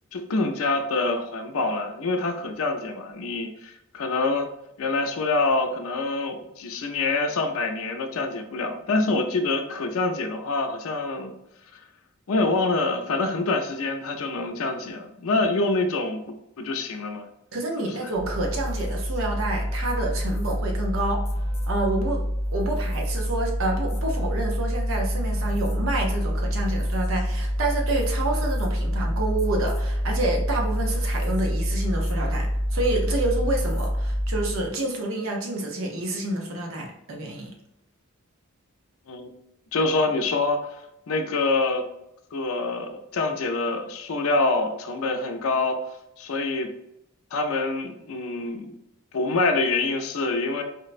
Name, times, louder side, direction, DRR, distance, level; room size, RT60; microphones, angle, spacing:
voice 1, 0.1-4.5 4.8-11.3 12.3-17.3 17.8-18.1 39.1-39.3 39.7-40.7 41.1-41.9 42.3-45.8 46.2-46.7 47.3-48.8 49.1-50.6, left 3 dB, 80° left, 6 dB, 0.5 m, -26 dB
voice 2, 17.5-21.3 21.7-22.2 22.5-37.6, right 2 dB, 70° right, 1 dB, 0.6 m, -28 dB
sound 1, 18.1-34.7, equal, 30° left, 0.7 m, -27 dB
4.4 x 2.1 x 2.4 m, 0.83 s
head